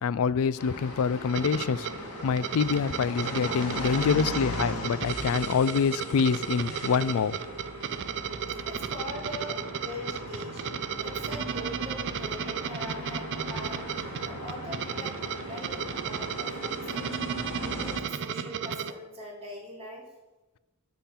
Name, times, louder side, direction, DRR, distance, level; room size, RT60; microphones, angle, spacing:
voice 1, 0.0-1.9 2.2-7.4, left 6 dB, 65° left, 18 dB, 0.4 m, -26 dB
sound 1, 0.6-18.0, left 1 dB, 85° left, 1.9 m, -39 dB
sound 2, 1.3-18.9, right 7 dB, 55° right, 0.4 m, -34 dB
voice 2, 8.6-10.6 11.0-17.2 17.6-20.0, left 1 dB, 30° right, -4 dB, 3.1 m, -41 dB
11.0 x 3.8 x 7.3 m, 1.1 s
head